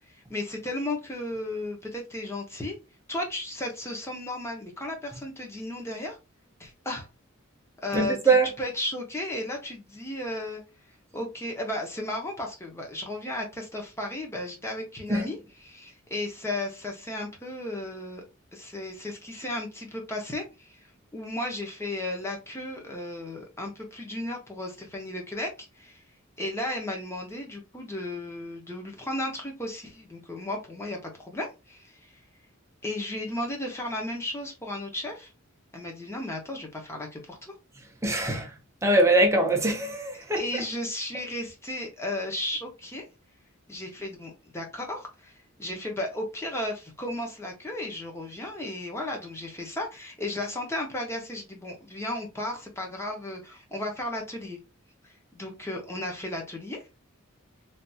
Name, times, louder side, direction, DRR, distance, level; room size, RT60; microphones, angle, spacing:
voice 1, 0.1-2.8 3.1-6.2 6.6-7.1 7.8-10.6 11.1-18.2 18.5-20.8 21.1-25.5 25.7-26.0 26.4-32.0 32.8-35.3 35.7-37.5 38.3-38.4 40.1-43.1 43.7-54.6 55.0-56.8, left 1 dB, 15° left, 0.9 m, -34 dB
voice 2, 7.9-8.5 15.1-15.2 38.0-38.4 38.8-40.4, right 2 dB, 15° right, 0.6 m, -22 dB
3.4 x 2.5 x 2.7 m
head